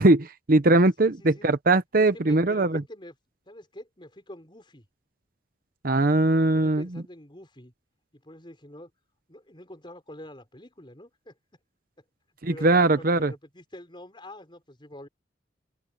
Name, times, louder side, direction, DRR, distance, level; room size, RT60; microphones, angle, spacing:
voice 1, 0.0-2.8 5.8-7.0 12.4-13.3, right 2 dB, 50° right, 0.9 m, -21 dB
voice 2, 1.0-1.5 2.0-3.1 3.5-4.9 6.4-7.7 8.1-8.9 9.3-11.4 12.5-15.1, left 1 dB, 25° left, 5.4 m, -46 dB
open air
head